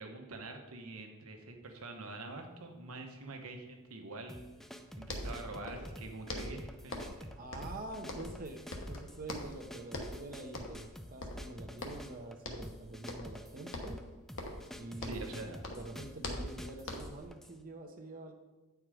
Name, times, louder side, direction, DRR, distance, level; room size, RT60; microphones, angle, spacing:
voice 1, 0.0-4.5 4.9-7.3 15.0-15.6 16.3-16.4, right 2 dB, 80° right, 4 dB, 1.1 m, -45 dB
sound 1, 4.3-17.6, equal, ahead, 0.3 m, -50 dB
sound 2, 5.0-6.0 6.3-7.2 7.5-8.4 8.7-9.6 9.9-10.2 10.5-10.9 11.2-12.1 12.4-12.8 13.1-13.4 13.7-15.4 15.6-17.2, left 1 dB, 60° left, 1.1 m, -42 dB
voice 2, 7.3-14.0 14.8-18.3, right 2 dB, 40° right, 4 dB, 0.7 m, -46 dB
8.9 x 4.6 x 4.9 m, 1.2 s
head